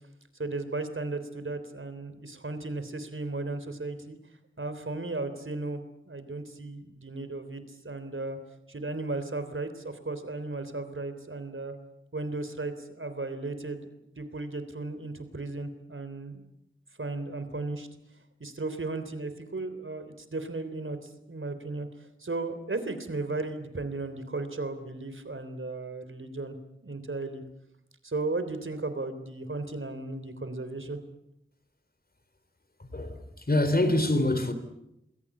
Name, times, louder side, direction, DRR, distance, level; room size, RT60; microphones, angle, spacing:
voice 1, 0.4-4.2 4.6-8.4 8.7-11.7 12.1-13.9 14.2-16.4 17.0-17.9 18.4-27.4 28.0-31.0, right 3 dB, 75° right, 3.6 m, -35 dB
voice 2, 32.8-34.5, left 1 dB, 45° left, 3.5 m, -25 dB
27.5 x 21.0 x 8.6 m
wide cardioid pair, 55°, 21 cm